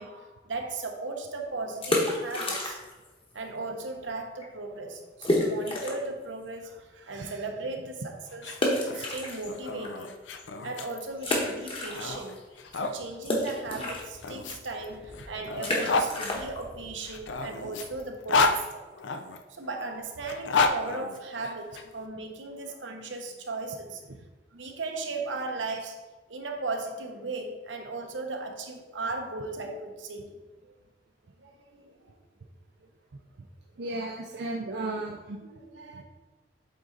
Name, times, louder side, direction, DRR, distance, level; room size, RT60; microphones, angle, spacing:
voice 1, 0.0-2.8 3.3-8.5 8.9-10.2 10.6-12.4 12.7-18.8 19.5-24.0 24.5-30.3 30.6-30.8 31.4-32.1 34.0-34.1 35.4-36.0, right 3 dB, 80° right, 4 dB, 0.9 m, -37 dB
sound 1, 1.7-3.1 3.3-3.4 4.0-4.1 4.4-4.5 5.2-6.1 6.6-6.7 8.5-9.9 10.4-10.5 11.2-12.4 12.6-18.2, left 1 dB, 30° left, 1.1 m, -31 dB
sound 2, 8.3-13.0 13.9-16.1 17.0-19.4 20.2-21.8, left 3 dB, 75° left, 0.5 m, -30 dB
voice 2, 33.8-35.4 35.9-36.0, right 2 dB, 65° right, 2 dB, 0.5 m, -34 dB
7.8 x 3.9 x 3.9 m, 1.2 s
head